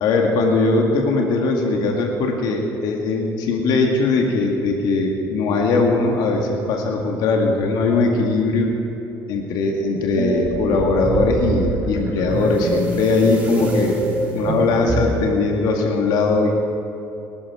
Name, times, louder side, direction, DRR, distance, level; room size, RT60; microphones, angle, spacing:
voice 1, 0.0-8.7 9.3-14.0 14.4-16.5, left 3 dB, 75° left, 1 dB, 2.0 m, -20 dB
sound 1, 10.2-15.3, right 1 dB, 20° right, 3.5 m, -24 dB
19.0 x 13.0 x 4.9 m, 2.8 s
cardioid pair, 100°, 7 cm